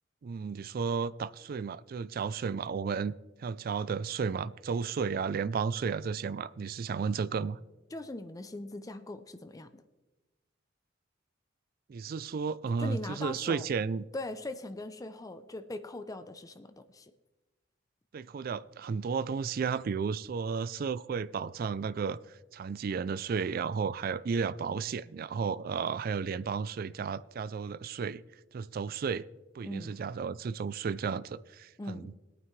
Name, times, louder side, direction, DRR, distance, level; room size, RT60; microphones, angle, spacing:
voice 1, 0.2-3.1 3.4-7.6 11.9-14.0 18.1-22.2 22.5-28.2 28.5-29.3 29.5-32.1, right 5 dB, 50° right, 0.3 m, -33 dB
voice 2, 7.9-9.8 12.8-13.7 14.1-17.1 29.6-30.0 31.8-32.1, left 2 dB, 20° left, 0.5 m, -41 dB
20.5 x 9.2 x 3.2 m
head